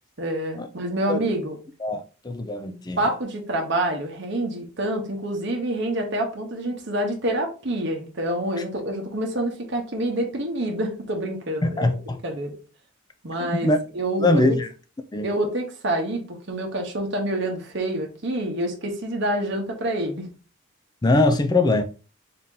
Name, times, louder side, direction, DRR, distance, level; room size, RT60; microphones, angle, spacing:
voice 1, 0.2-1.6 3.0-12.0 12.2-12.5 13.2-14.6 15.2-20.3, right 1 dB, 55° right, 0.9 m, -27 dB
voice 2, 1.8-3.1 11.6-12.2 13.5-13.8 14.2-14.7 15.1-15.3 21.0-21.8, left 2 dB, 20° left, 0.4 m, -22 dB
3.8 x 2.8 x 3.7 m
head